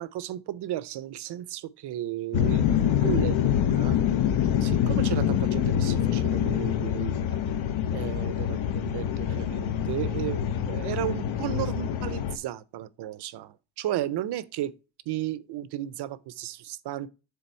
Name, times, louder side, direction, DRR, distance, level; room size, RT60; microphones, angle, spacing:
voice 1, 0.0-2.7 3.0-4.0 4.6-7.4 7.9-14.7 15.1-17.1, right 13 dB, 60° right, 0.5 m, -34 dB
sound 1, 2.3-12.4, left 9 dB, 85° left, 0.8 m, -25 dB
6.9 x 3.8 x 4.3 m
wide cardioid pair, 175°, 46 cm